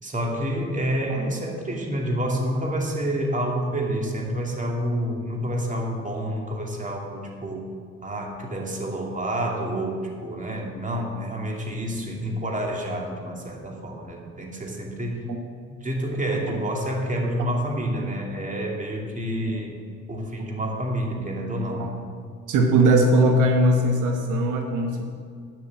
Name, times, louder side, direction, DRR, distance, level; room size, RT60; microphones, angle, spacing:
voice 1, 0.0-7.7 8.0-15.2 15.7-19.7 20.1-21.9, right 1 dB, 25° right, 0 dB, 2.4 m, -28 dB
voice 2, 22.5-25.0, right 1 dB, 85° right, 3 dB, 1.2 m, -20 dB
9.6 x 7.7 x 7.5 m, 2.2 s
cardioid pair, 90°, 30 cm